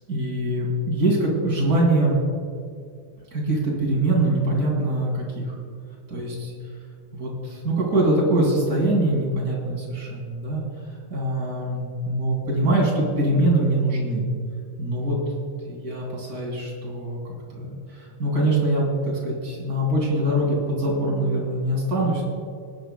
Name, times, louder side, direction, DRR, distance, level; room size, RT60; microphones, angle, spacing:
voice 1, 0.1-2.2 3.3-5.6 6.1-6.5 7.1-10.6 11.1-14.2 14.8-15.2 15.6-22.2, right 1 dB, 25° right, -3 dB, 2.5 m, -23 dB
23.5 x 9.4 x 2.3 m, 2.3 s
omnidirectional pair, 4.4 m